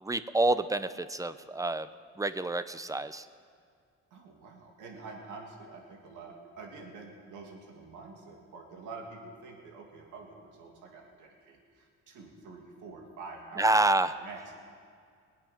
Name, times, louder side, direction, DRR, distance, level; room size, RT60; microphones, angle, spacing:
voice 1, 0.0-1.9 2.2-3.3 13.6-14.2, right 2 dB, 10° right, 13 dB, 0.6 m, -28 dB
voice 2, 4.1-13.7 14.2-14.5, right 4 dB, 80° right, 1 dB, 2.5 m, -47 dB
20.5 x 8.6 x 5.9 m, 2.2 s
cardioid pair, 90°, 30 cm